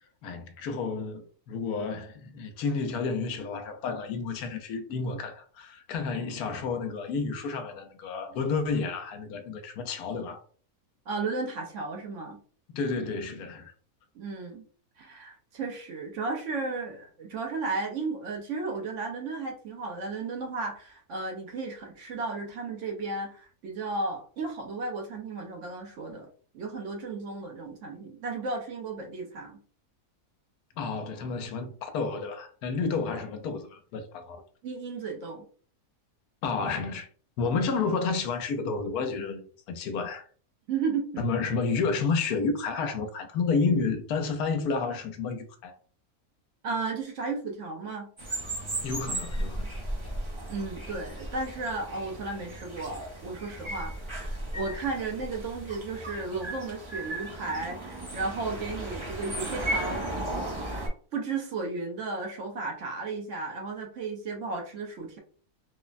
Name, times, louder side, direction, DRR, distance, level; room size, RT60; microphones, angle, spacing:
voice 1, 0.2-10.4 12.7-13.7 30.8-34.4 36.4-37.1 37.4-40.2 41.2-45.8 48.8-49.8, left 4 dB, 90° left, 1.1 m, -30 dB
voice 2, 11.1-12.4 14.1-14.6 15.0-26.3 26.5-29.6 34.6-35.4 40.7-41.2 46.6-48.1 50.5-60.1 61.1-65.2, right 3 dB, 65° right, 0.9 m, -34 dB
sound 1, 48.2-60.9, right 1 dB, 30° right, 0.6 m, -35 dB
3.2 x 2.1 x 2.4 m
omnidirectional pair, 1.5 m